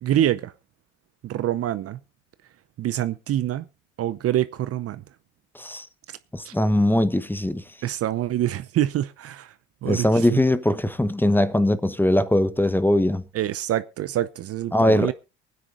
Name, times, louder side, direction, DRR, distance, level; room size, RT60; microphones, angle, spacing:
voice 1, 0.0-0.5 1.2-2.0 2.8-3.6 4.0-5.0 6.4-6.5 7.8-9.5 9.8-10.4 13.3-15.1, right 12 dB, 45° right, 0.7 m, -26 dB
voice 2, 6.3-7.6 9.9-13.2 14.7-15.1, left 1 dB, 5° left, 1.1 m, -21 dB
23.5 x 9.6 x 2.6 m
hypercardioid pair, 70°, 32 cm